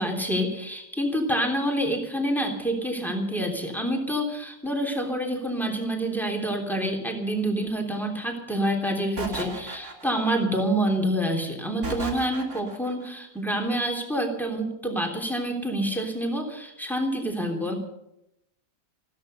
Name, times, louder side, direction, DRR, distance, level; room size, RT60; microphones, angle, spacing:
voice 1, 0.0-17.8, right 1 dB, ahead, 1 dB, 3.1 m, -27 dB
sound 1, 9.2-10.4 11.8-12.9, right 2 dB, 65° right, 3.4 m, -35 dB
15.0 x 13.5 x 6.7 m, 0.84 s
omnidirectional pair, 1.7 m